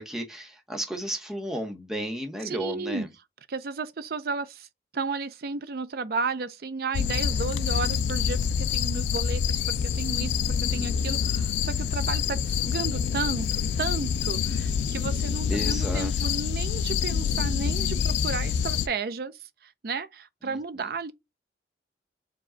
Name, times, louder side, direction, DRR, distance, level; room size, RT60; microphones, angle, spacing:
voice 1, 0.0-3.1 10.1-10.7 15.5-16.3 20.4-20.6, equal, 5° right, 0.8 m, -34 dB
voice 2, 2.4-3.1 3.5-4.7 4.9-21.1, right 4 dB, 55° right, 0.5 m, -33 dB
sound 1, 6.9-18.9, left 7 dB, 80° left, 0.3 m, -26 dB
4.7 x 2.3 x 3.8 m
head